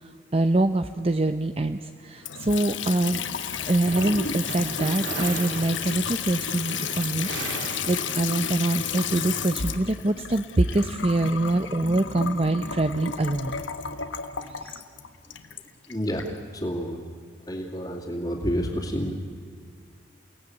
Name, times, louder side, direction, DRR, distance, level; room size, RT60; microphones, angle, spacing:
voice 1, 0.0-3.2 3.7-13.6 14.5-14.8, right 2 dB, 30° right, 9 dB, 0.6 m, -25 dB
Water tap faucet / Sink (filling or washing) / Trickle dribble, 2.2-16.3, left 7 dB, 75° left, 1.4 m, -32 dB
sound 1, 3.4-8.5, right 4 dB, 75° right, 3.9 m, -37 dB
voice 2, 15.9-17.0 17.5-19.1, equal, 25° left, -5 dB, 2.7 m, -29 dB
29.0 x 18.0 x 9.5 m, 2.2 s
head